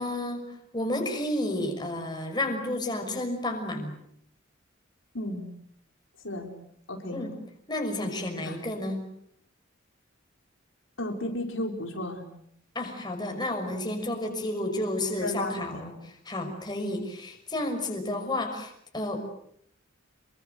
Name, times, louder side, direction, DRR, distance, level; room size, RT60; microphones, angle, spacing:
voice 1, 0.0-4.0 7.1-7.4 7.7-9.1 12.7-19.2, left 1 dB, 20° left, 4 dB, 5.9 m, -31 dB
voice 2, 5.1-5.5 6.2-6.5 6.9-7.2 8.4-8.6 11.0-12.2 13.7-13.8 15.2-15.8, left 1 dB, 75° left, 3 dB, 4.9 m, -34 dB
28.0 x 24.0 x 7.9 m, 0.69 s
head